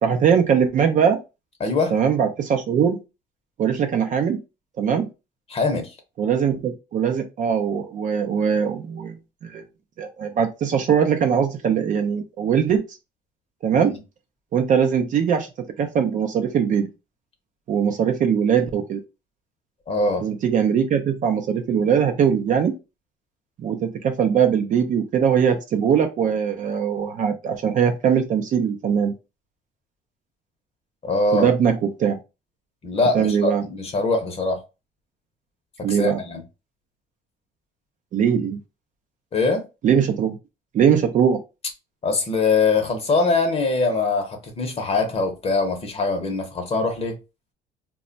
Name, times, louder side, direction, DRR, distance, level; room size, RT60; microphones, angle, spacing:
voice 1, 0.0-1.2 1.9-3.0 3.6-4.4 4.8-5.1 6.2-9.2 9.4-9.6 10.0-12.8 13.6-14.0 14.5-15.5 15.8-16.9 17.7-19.0 20.2-22.7 23.6-29.1 31.3-32.2 33.1-33.6 35.8-36.2 38.1-38.6 39.8-40.4 40.7-41.4, right 7 dB, 50° right, 0.5 m, -21 dB
voice 2, 1.6-1.9 5.5-5.9 13.9-14.0 19.9-20.3 31.0-31.5 32.8-34.6 35.9-36.4 39.3-39.6 42.0-47.2, left 3 dB, 35° left, 0.7 m, -22 dB
2.1 x 2.1 x 3.7 m
cardioid pair, 110°, 17 cm